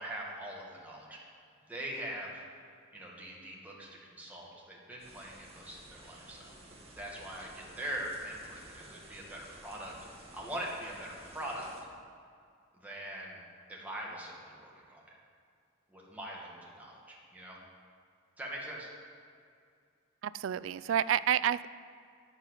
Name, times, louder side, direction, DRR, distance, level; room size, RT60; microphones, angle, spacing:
voice 1, 0.0-1.3 1.7-2.4 2.9-6.5 7.0-9.9 10.3-11.7 12.8-13.4 13.7-15.0 15.9-17.6 18.4-18.9, right 1 dB, 10° right, -4 dB, 1.9 m, -42 dB
sound 1, 5.0-11.8, right 2 dB, 30° right, 1.6 m, -53 dB
voice 2, 20.2-21.7, right 10 dB, 70° right, 16 dB, 0.3 m, -29 dB
9.7 x 6.8 x 8.1 m, 2.3 s
head